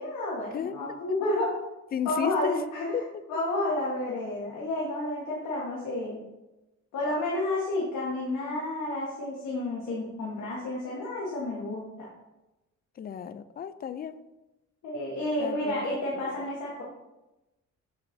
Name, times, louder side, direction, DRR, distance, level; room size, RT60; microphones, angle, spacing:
voice 1, 0.0-1.5 2.0-3.0 3.3-6.2 6.9-11.9 14.8-16.8, left 2 dB, 75° left, -5 dB, 1.5 m, -30 dB
voice 2, 0.5-1.0 1.9-2.5 2.9-3.0 13.0-14.2 15.4-15.8 16.1-16.5, left 8 dB, 30° left, 13 dB, 0.4 m, -34 dB
6.8 x 6.5 x 2.7 m, 1.0 s
cardioid pair, 90°, 30 cm